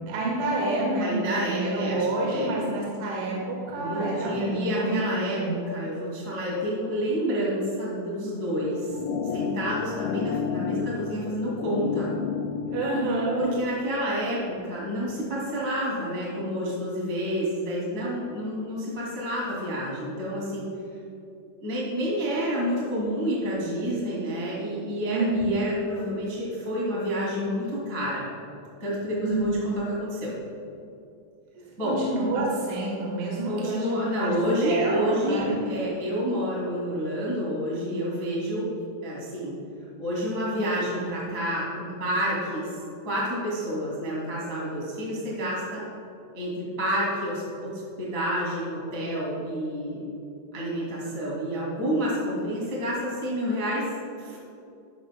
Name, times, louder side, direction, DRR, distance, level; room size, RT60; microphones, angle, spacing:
voice 1, 0.0-5.6 12.7-13.4 25.1-25.4 29.2-29.6 31.8-34.4 34.6-35.6, right 2 dB, 70° right, -4 dB, 4.1 m, -28 dB
voice 2, 1.0-2.5 3.7-9.0 9.2-12.1 13.4-20.7 21.6-28.2 28.8-30.3 31.8-32.0 33.5-38.7 39.0-39.6 40.0-42.8 43.0-45.8 46.3-50.1 50.5-53.9 54.2-54.4, equal, 25° right, -6 dB, 1.7 m, -29 dB
sound 1, 8.6-13.6, left 6 dB, 85° left, 3.2 m, -31 dB
13.5 x 13.0 x 2.2 m, 2.6 s
omnidirectional pair, 5.9 m